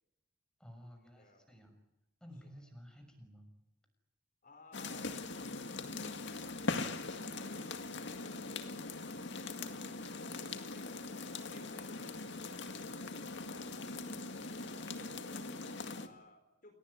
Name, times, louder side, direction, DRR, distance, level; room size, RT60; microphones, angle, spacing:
voice 1, 0.6-1.7 2.2-3.5, equal, 5° left, 4 dB, 6.3 m, -53 dB
voice 2, 4.4-5.2 6.0-8.4 10.2-16.7, left 2 dB, 45° left, 5 dB, 4.3 m, -61 dB
sound 1, 4.7-16.1, left 3 dB, 60° left, 2.1 m, -41 dB
29.5 x 19.0 x 9.8 m, 0.93 s
head